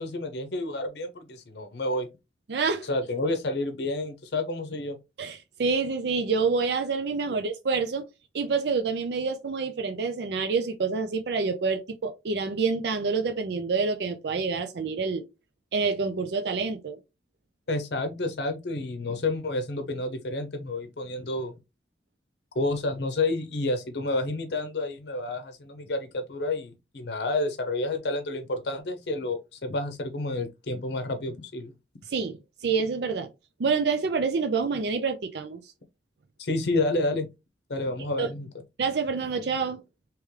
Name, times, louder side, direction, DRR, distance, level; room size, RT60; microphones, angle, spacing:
voice 1, 0.0-2.1 2.8-5.0 17.7-21.5 22.5-31.7 36.4-37.3 37.7-38.5, left 2 dB, 70° left, 0.7 m, -30 dB
voice 2, 2.5-2.9 5.2-8.0 8.3-15.2 15.7-17.0 32.1-32.4 32.6-33.3 33.6-35.6 38.2-38.3 38.8-39.8, right 4 dB, 70° right, 0.4 m, -27 dB
3.2 x 3.0 x 3.5 m
head